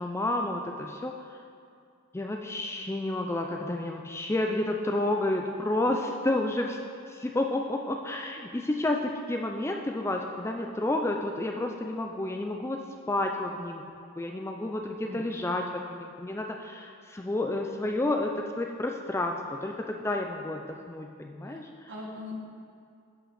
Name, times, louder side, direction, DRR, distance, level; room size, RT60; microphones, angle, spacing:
voice 1, 0.0-1.4 2.1-6.8 7.1-12.8 13.1-13.8 14.2-21.7, left 1 dB, 10° left, 2 dB, 0.3 m, -30 dB
voice 2, 15.0-15.7 21.9-22.4, left 2 dB, 60° right, -3 dB, 1.8 m, -40 dB
11.5 x 5.7 x 4.2 m, 2.3 s
head